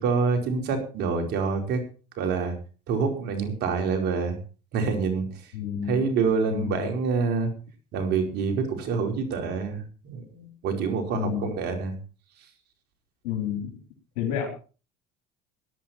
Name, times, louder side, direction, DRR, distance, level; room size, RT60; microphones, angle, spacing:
voice 1, 0.0-1.8 2.2-2.6 2.9-4.4 4.7-5.3 5.9-7.5 7.9-11.9, right 5 dB, 65° right, 4 dB, 4.8 m, -26 dB
voice 2, 5.5-6.1 6.5-6.9 11.1-11.5 13.2-13.8 14.2-14.5, left 8 dB, 85° left, 0 dB, 3.7 m, -30 dB
17.5 x 11.5 x 4.4 m, 0.37 s
supercardioid pair, 95°, 18 cm